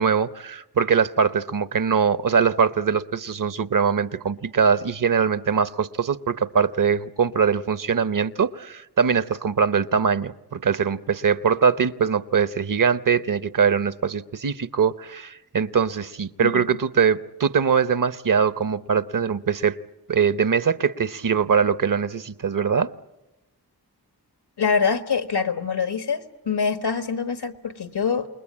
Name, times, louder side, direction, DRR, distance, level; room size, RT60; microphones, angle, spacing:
voice 1, 0.0-19.8 20.1-22.9, right 6 dB, 55° right, 15 dB, 0.9 m, -22 dB
voice 2, 24.6-28.3, left 5 dB, 85° left, 10 dB, 1.5 m, -25 dB
28.5 x 20.5 x 8.7 m, 0.99 s
cardioid pair, 55°, 39 cm